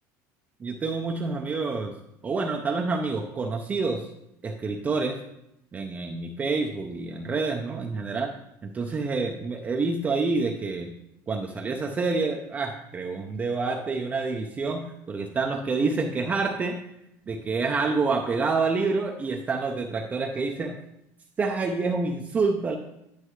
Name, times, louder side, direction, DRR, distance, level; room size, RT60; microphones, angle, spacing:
voice 1, 0.6-1.9 2.2-4.1 4.4-5.2 5.7-8.3 8.6-10.9 11.3-16.8 17.3-20.8 21.4-22.8, right 4 dB, 20° right, 1 dB, 0.5 m, -27 dB
9.8 x 5.4 x 3.2 m, 0.80 s
cardioid pair, 150°, 8 cm